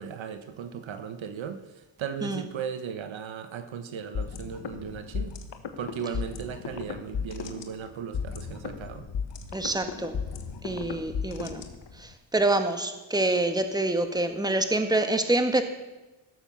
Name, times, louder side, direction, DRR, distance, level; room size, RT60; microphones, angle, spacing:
voice 1, 0.0-5.3 5.8-9.1, right 7 dB, 65° right, 9 dB, 1.2 m, -37 dB
sound 1, 4.1-12.1, left 6 dB, 60° left, 1.5 m, -35 dB
voice 2, 9.5-10.2 10.6-11.6 12.0-15.6, right 2 dB, 10° right, 7 dB, 1.6 m, -26 dB
16.5 x 7.1 x 7.0 m, 1.1 s
cardioid pair, 75°, 49 cm